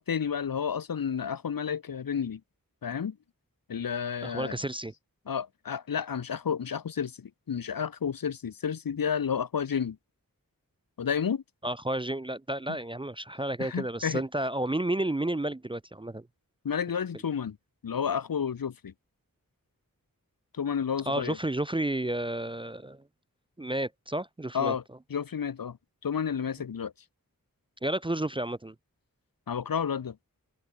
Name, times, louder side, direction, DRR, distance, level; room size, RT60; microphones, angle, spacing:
voice 1, 0.0-2.4 2.8-3.2 3.7-4.6 5.3-10.0 11.0-11.4 13.6-14.2 16.6-17.6 17.8-18.9 20.5-21.4 24.5-24.8 25.1-25.8 26.0-26.9 29.5-30.2, left 7 dB, 75° left, 0.7 m, -31 dB
voice 2, 4.2-4.9 11.6-16.3 21.1-23.0 23.6-24.7 27.8-28.7, right 1 dB, 15° right, 0.4 m, -31 dB
wide cardioid pair, 45°, 35 cm